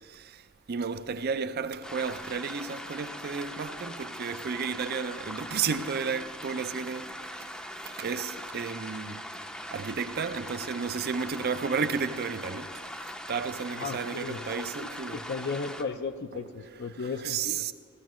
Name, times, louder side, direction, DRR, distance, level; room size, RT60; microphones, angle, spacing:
voice 1, 0.7-7.1 7.4-7.5 7.8-9.2 9.7-12.8 13.3-15.2 17.2-17.7, right 5 dB, 45° right, 0.5 m, -32 dB
sound 1, 1.8-15.8, equal, 5° left, 0.6 m, -41 dB
voice 2, 13.7-17.7, left 4 dB, 50° left, 0.5 m, -36 dB
15.5 x 15.0 x 3.1 m
head